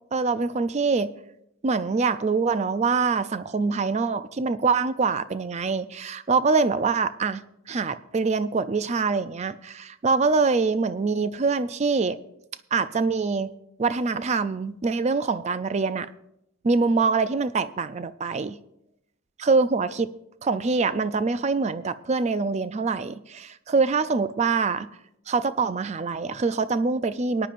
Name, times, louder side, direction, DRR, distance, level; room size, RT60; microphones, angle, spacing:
voice 1, 0.1-1.1 1.6-12.2 12.7-13.5 13.8-16.1 16.6-18.6 19.4-20.1 20.4-24.9 25.3-27.5, right 4 dB, 30° right, 14 dB, 0.3 m, -24 dB
19.5 x 9.9 x 2.5 m, 0.81 s
head